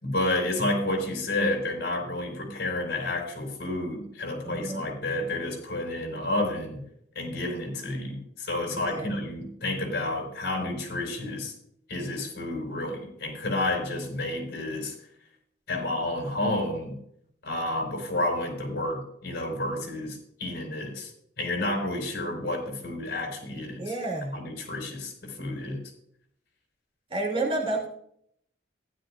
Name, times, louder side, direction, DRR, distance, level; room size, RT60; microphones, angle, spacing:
voice 1, 0.0-6.8 7.1-11.5 11.9-14.9 15.7-16.9 17.4-21.1 21.4-23.9 24.3-25.8, left 1 dB, 60° left, 2 dB, 5.0 m, -30 dB
voice 2, 4.4-4.9 8.9-9.2 23.8-24.3 27.1-27.9, right 2 dB, 30° right, -2 dB, 2.8 m, -30 dB
15.5 x 11.5 x 2.5 m, 0.69 s
head